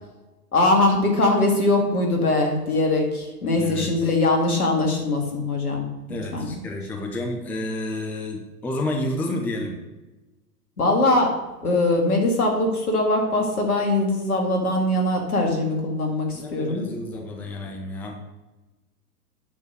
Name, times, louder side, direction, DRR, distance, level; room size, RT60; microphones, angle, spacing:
voice 1, 0.5-6.6 10.8-11.3 11.6-16.8, left 2 dB, 70° left, 2 dB, 2.4 m, -22 dB
voice 2, 3.6-4.1 6.1-9.8 16.3-18.2, left 1 dB, 5° left, 2 dB, 0.5 m, -30 dB
8.5 x 6.2 x 5.1 m, 1.1 s
figure-of-eight pair, 100°, 46 cm